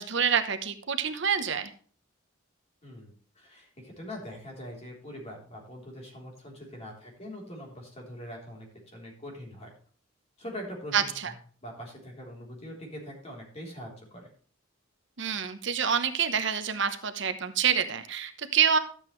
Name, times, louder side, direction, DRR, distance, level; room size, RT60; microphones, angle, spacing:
voice 1, 0.0-1.7 10.9-11.3 15.2-18.8, right 7 dB, 65° right, 8 dB, 0.9 m, -27 dB
voice 2, 2.8-9.7 10.4-11.3 11.6-14.3, equal, 35° left, -1 dB, 3.6 m, -43 dB
12.5 x 8.1 x 3.2 m, 0.43 s
head